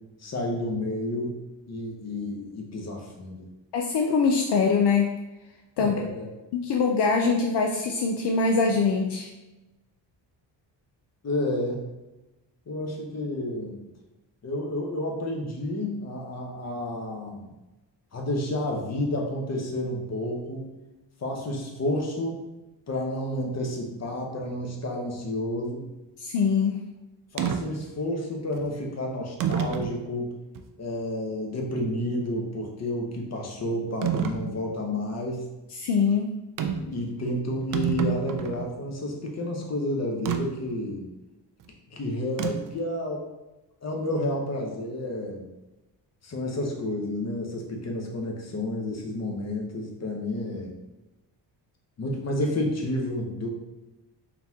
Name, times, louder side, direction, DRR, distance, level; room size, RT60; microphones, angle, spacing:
voice 1, 0.2-1.3 1.7-3.4 5.8-6.3 11.2-11.8 12.7-13.8 14.4-17.5 18.1-20.7 21.2-22.4 22.9-25.8 27.3-30.3 30.8-35.5 36.8-41.0 41.9-43.3 43.8-45.4 46.2-50.7 52.0-53.5, left 1 dB, 35° left, 1 dB, 0.9 m, -30 dB
voice 2, 3.7-5.1 5.8-6.0 6.5-9.3 26.2-26.8 35.8-36.4, left 5 dB, 65° left, 2 dB, 0.5 m, -23 dB
sound 1, 27.4-27.6 28.5-28.7 29.4-29.9 30.6-30.7 34.0-34.4 36.6-36.9 37.3-37.4 37.6-38.7 40.3-40.4 42.4-42.8, right 9 dB, 45° right, 0.4 m, -27 dB
3.9 x 2.9 x 3.5 m, 1.1 s
cardioid pair, 110°, 46 cm